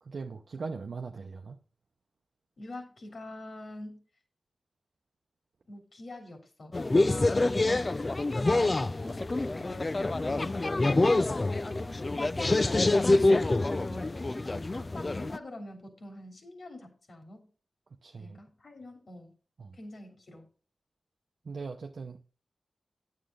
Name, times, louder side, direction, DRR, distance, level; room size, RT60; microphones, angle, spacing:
voice 1, 0.0-1.6 11.7-11.9 18.0-18.4 19.6-19.8 21.4-22.3, right 4 dB, 70° right, 0.7 m, -40 dB
voice 2, 2.6-4.0 5.7-8.0 8.4-11.5 13.9-14.2 14.8-17.5 18.2-19.3 19.7-20.5, left 1 dB, 60° left, 3.2 m, -46 dB
sound 1, 6.7-15.4, left 2 dB, 35° left, 0.5 m, -26 dB
9.5 x 7.6 x 3.8 m
wide cardioid pair, 70°, 0 cm